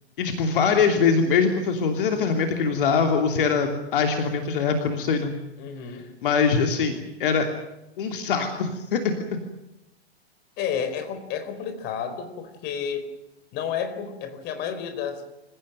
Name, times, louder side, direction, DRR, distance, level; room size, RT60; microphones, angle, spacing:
voice 1, 0.2-5.3 6.2-7.5 8.0-9.1, left 5 dB, 55° left, 5 dB, 3.0 m, -23 dB
voice 2, 5.6-6.0 10.6-13.1 13.5-15.3, left 7 dB, 30° left, 8 dB, 4.4 m, -31 dB
28.0 x 16.5 x 9.1 m, 0.94 s
figure-of-eight pair, 110°, 33 cm